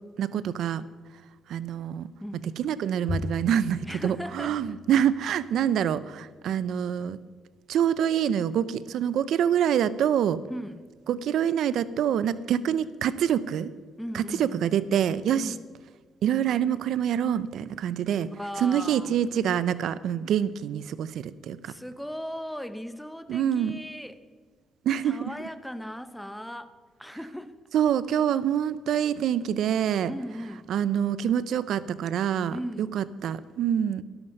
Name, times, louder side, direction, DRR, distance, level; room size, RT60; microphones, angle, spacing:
voice 1, 0.2-0.8 1.5-2.1 2.6-7.2 7.7-10.4 11.1-13.7 14.1-15.5 16.2-18.3 18.6-21.7 23.3-23.8 24.9-25.2 27.7-30.1 30.7-32.6 32.9-34.0, right 9 dB, 75° right, 17 dB, 0.5 m, -26 dB
Bowed string instrument, 3.1-5.6, left 4 dB, 35° left, 0.7 m, -38 dB
voice 2, 3.8-4.7 10.5-10.8 14.0-14.6 15.3-15.6 18.4-19.2 21.6-24.2 25.0-26.7 27.0-27.5 30.0-30.7 32.5-32.9, equal, ahead, 12 dB, 0.9 m, -37 dB
13.0 x 12.5 x 5.3 m, 1.5 s
cardioid pair, 90°, 0 cm